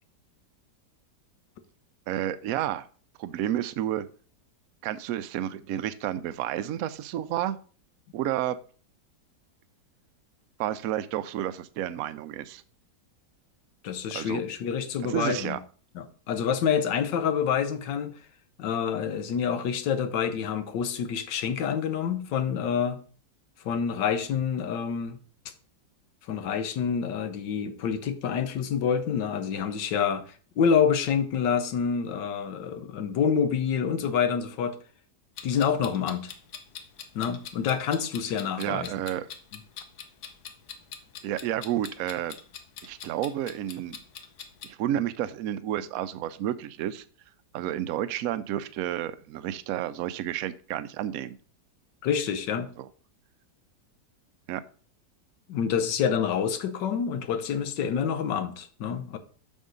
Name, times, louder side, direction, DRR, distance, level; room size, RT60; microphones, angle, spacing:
voice 1, 2.1-2.9 3.2-4.1 4.8-7.6 8.1-8.6 10.6-12.6 14.1-14.4 15.1-15.6 38.6-39.3 41.2-42.4 42.8-44.0 44.6-47.0 47.5-51.4 52.8-52.9 54.5-54.6, right 12 dB, 70° right, 0.9 m, -30 dB
voice 2, 13.8-15.6 15.9-18.1 18.6-23.0 23.6-25.2 26.3-34.8 35.4-36.3 37.1-38.9 52.0-52.7 55.5-59.2, left 7 dB, 85° left, 1.5 m, -27 dB
Clock, 35.4-44.7, left 7 dB, 65° left, 1.3 m, -44 dB
7.3 x 6.3 x 3.9 m
omnidirectional pair, 1.9 m